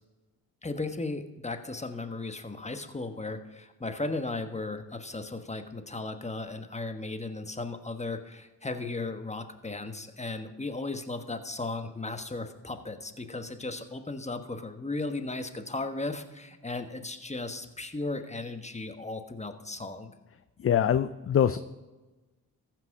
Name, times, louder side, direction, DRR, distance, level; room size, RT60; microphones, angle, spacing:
voice 1, 0.6-20.1, left 2 dB, 15° left, 8 dB, 1.3 m, -36 dB
voice 2, 20.6-21.6, left 9 dB, 35° left, 13 dB, 0.5 m, -24 dB
14.5 x 6.2 x 4.9 m, 1.2 s
supercardioid pair, 45°, 42 cm